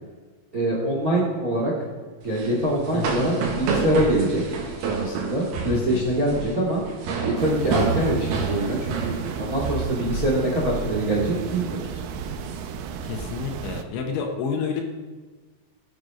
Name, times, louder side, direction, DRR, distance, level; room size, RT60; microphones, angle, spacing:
voice 1, 0.5-1.7 2.2-4.4 4.8-6.8 7.2-11.8, right 1 dB, 35° right, -2 dB, 1.5 m, -24 dB
sound 1, 2.2-10.3 10.6-10.9 11.2-11.6 12.0-13.2, right 4 dB, 60° right, 3.2 m, -29 dB
voice 2, 2.9-3.3 5.7-6.0 13.0-14.8, left 6 dB, 75° left, 2 dB, 3.3 m, -30 dB
sound 2, 7.4-13.8, right 7 dB, 85° right, 3.2 m, -34 dB
17.5 x 8.1 x 5.1 m, 1.3 s
omnidirectional pair, 5.7 m